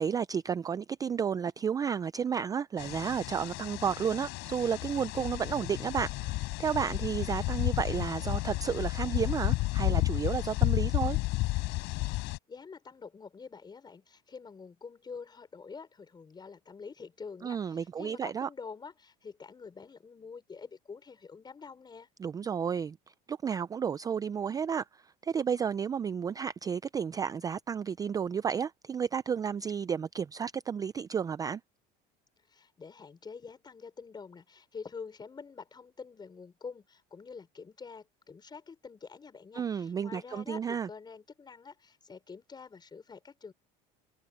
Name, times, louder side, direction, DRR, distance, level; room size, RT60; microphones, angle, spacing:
voice 1, 0.0-11.2 17.4-18.5 22.2-23.0 23.3-31.6 39.5-40.9, right 7 dB, 20° right, 0.4 m, -32 dB
sound 1, 2.8-12.4, left 21 dB, 70° left, 4.1 m, -32 dB
voice 2, 12.1-22.1 32.5-43.5, left 5 dB, 20° left, 5.5 m, -47 dB
cardioid pair, 125°, 19 cm